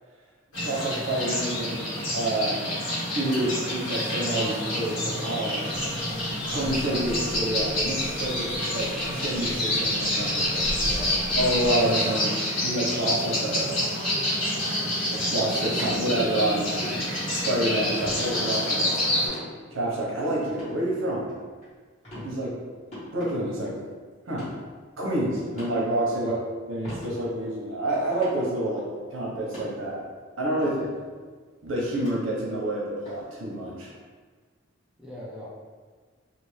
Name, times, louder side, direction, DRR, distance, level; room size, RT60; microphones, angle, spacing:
sound 1, 0.5-19.3, left 1 dB, 75° left, 1.2 m, -28 dB
voice 1, 0.6-1.8 2.1-2.6 3.1-5.6 6.5-10.6 11.4-12.3 12.6-13.9 15.1-16.7 17.3-18.9 19.7-21.3 22.2-22.5 23.1-23.7 24.3-24.5 25.0-26.3 26.7-28.8 29.1-30.0 30.4-30.7 31.6-33.9, right 1 dB, 70° right, -4 dB, 0.8 m, -28 dB
sound 2, 5.7-11.9, equal, 55° left, 0.6 m, -40 dB
voice 2, 10.8-11.2 26.1-26.4 30.6-30.9 35.0-35.5, left 1 dB, 5° right, -7 dB, 0.4 m, -40 dB
sound 3, 15.7-16.4 16.8-17.0 18.0-18.2 19.3-19.5 20.5-20.7 21.2-21.6 22.0-22.3 22.9-23.4 24.3-24.5 25.5-25.8 26.8-27.1 27.5-27.6 28.0-28.5 29.4-29.7 30.7-30.8 31.9-32.1 33.1-33.2, left 1 dB, 30° left, 1.3 m, -39 dB
2.5 x 2.5 x 3.1 m, 1.5 s
head